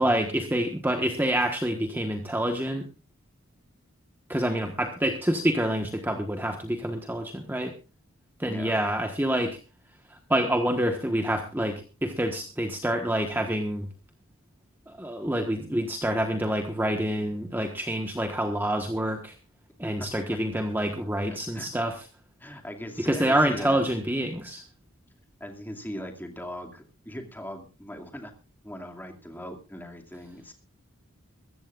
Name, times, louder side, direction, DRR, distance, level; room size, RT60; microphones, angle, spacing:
voice 1, 0.0-2.9 4.3-7.7 8.4-9.6 10.1-13.9 14.9-19.4 19.8-22.0 23.0-24.6, right 1 dB, 10° right, 4 dB, 1.3 m, -27 dB
voice 2, 22.4-23.8 25.4-28.3 28.6-30.5, equal, 10° left, 3 dB, 2.3 m, -39 dB
22.5 x 14.5 x 2.5 m, 0.31 s
head